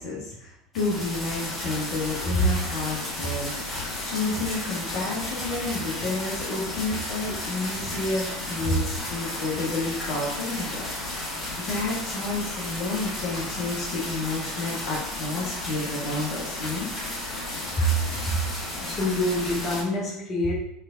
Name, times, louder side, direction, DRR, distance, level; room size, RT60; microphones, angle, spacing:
voice 1, 0.0-10.9 11.7-16.9 17.8-17.9 18.3-18.4, left 1 dB, 55° left, -4 dB, 0.8 m, -29 dB
sound 1, 0.7-19.8, left 1 dB, 15° left, 1.3 m, -33 dB
voice 2, 18.7-20.5, left 2 dB, 35° left, -2 dB, 1.0 m, -27 dB
3.2 x 3.1 x 2.4 m, 0.83 s
figure-of-eight pair, 75°, 0 cm